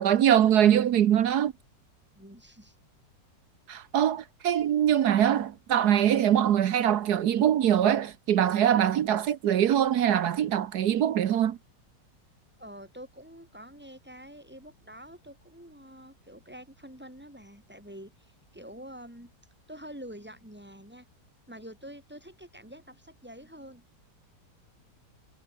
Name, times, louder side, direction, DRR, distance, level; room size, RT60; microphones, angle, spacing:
voice 1, 0.0-1.5 3.7-11.6, right 10 dB, 65° right, 1.3 m, -23 dB
voice 2, 2.1-2.7 12.6-19.3 19.7-21.1 21.5-23.8, equal, 5° right, 4.9 m, -47 dB
omnidirectional pair, 2.0 m